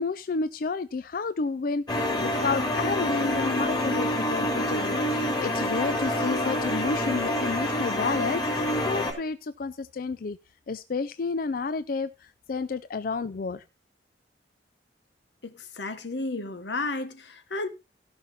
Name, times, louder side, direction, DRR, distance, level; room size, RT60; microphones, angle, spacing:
voice 1, 0.0-10.4 10.7-13.6, left 4 dB, 55° left, 0.4 m, -31 dB
sound 1, 1.9-9.1, left 1 dB, 25° left, 3.0 m, -27 dB
voice 2, 15.4-17.7, left 2 dB, 85° left, 1.3 m, -33 dB
16.0 x 5.8 x 4.1 m
head